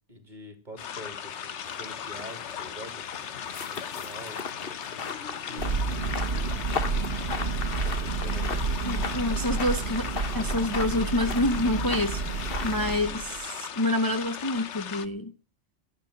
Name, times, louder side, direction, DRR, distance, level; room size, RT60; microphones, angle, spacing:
voice 1, 0.1-3.1 3.7-5.2 5.5-6.5 7.8-8.7, equal, 45° right, 6 dB, 3.2 m, -46 dB
sound 1, 0.8-15.1, left 8 dB, 85° left, 1.2 m, -38 dB
sound 2, 1.6-13.0, left 5 dB, 55° left, 1.3 m, -38 dB
Thunder, 5.6-13.5, right 4 dB, 65° right, 1.4 m, -30 dB
voice 2, 8.8-10.0 10.3-12.2 12.6-15.3, left 1 dB, 20° left, 6 dB, 0.9 m, -27 dB
12.0 x 7.9 x 9.7 m, 0.39 s
omnidirectional pair, 1.1 m